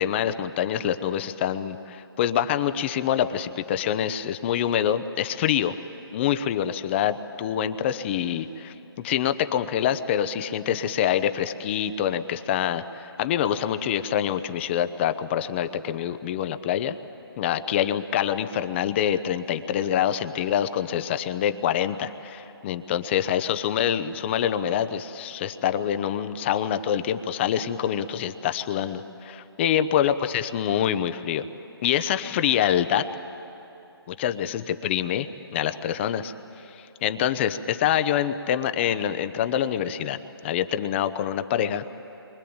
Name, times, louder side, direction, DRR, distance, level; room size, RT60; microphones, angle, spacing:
voice 1, 0.0-5.7 6.1-8.7 9.0-16.9 17.4-31.4 31.8-33.0 34.1-36.3 36.7-40.2 40.4-41.8, left 10 dB, 25° left, 10 dB, 0.8 m, -26 dB
28.0 x 24.0 x 8.8 m, 2.8 s
hypercardioid pair, 150°, 14 cm